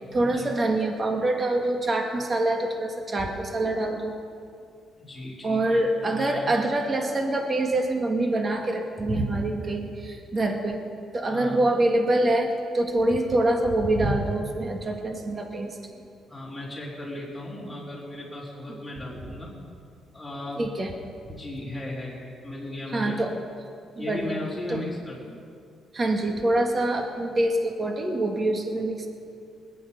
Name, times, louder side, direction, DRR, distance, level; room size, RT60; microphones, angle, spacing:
voice 1, 0.1-4.1 5.4-10.8 11.1-15.8 18.7-18.8 20.6-20.9 22.9-23.4 24.0-24.4 24.7-24.8 25.9-29.1, right 1 dB, 35° right, 3 dB, 1.9 m, -25 dB
voice 2, 5.0-6.5 11.2-11.6 16.3-19.6 20.1-20.7 21.3-23.2 24.0-25.4, left 1 dB, 10° left, -10 dB, 4.5 m, -36 dB
20.0 x 10.5 x 5.4 m, 2.3 s
cardioid pair, 90°, 0 cm